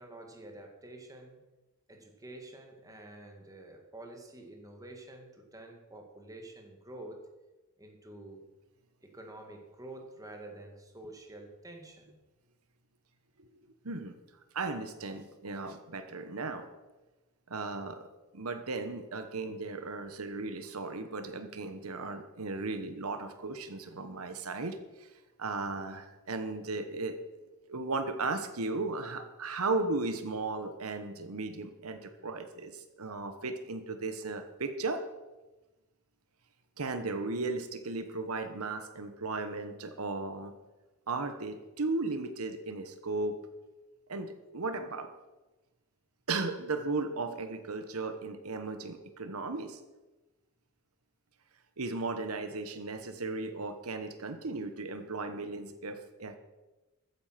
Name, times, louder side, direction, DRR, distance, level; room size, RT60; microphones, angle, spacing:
voice 1, 0.0-1.4 1.9-7.3 7.8-8.4 9.0-12.1, right 1 dB, 15° right, 2 dB, 2.1 m, -48 dB
voice 2, 14.5-16.7 17.5-18.1 18.3-25.1 25.4-27.2 27.7-35.0 36.8-40.5 41.1-43.4 44.1-45.1 46.3-49.8 51.8-56.4, right 3 dB, 85° right, 8 dB, 1.2 m, -36 dB
14.0 x 9.7 x 5.9 m, 1.1 s
head